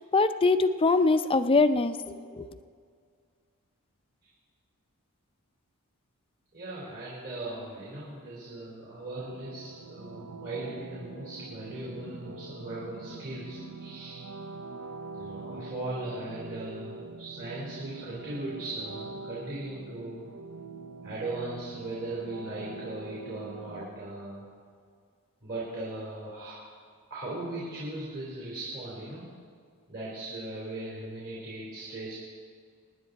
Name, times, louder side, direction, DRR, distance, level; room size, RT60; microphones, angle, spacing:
voice 1, 0.0-2.5, left 3 dB, 25° left, 10 dB, 0.5 m, -23 dB
voice 2, 6.5-14.3 15.1-20.3 21.0-24.5 25.4-26.6 27.1-29.3 29.9-32.1, right 2 dB, 50° right, -7 dB, 3.7 m, -38 dB
sound 1, 9.2-23.9, right 4 dB, 85° right, 0.6 m, -44 dB
24.5 x 10.5 x 4.1 m, 2.1 s
head